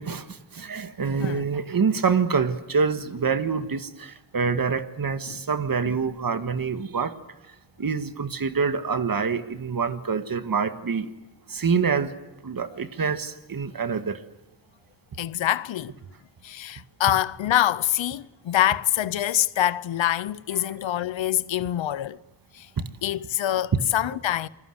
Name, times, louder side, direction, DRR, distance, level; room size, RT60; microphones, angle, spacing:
voice 1, 0.0-7.2 7.8-11.1 11.5-12.2 12.4-14.2 20.6-20.7 22.8-22.9 23.7-23.8, right 5 dB, 50° right, 1.7 m, -26 dB
voice 2, 15.2-15.9 16.4-22.2 22.5-22.7 23.0-24.5, left 12 dB, 90° left, 0.8 m, -25 dB
27.5 x 20.5 x 7.9 m
wide cardioid pair, 90°, 44 cm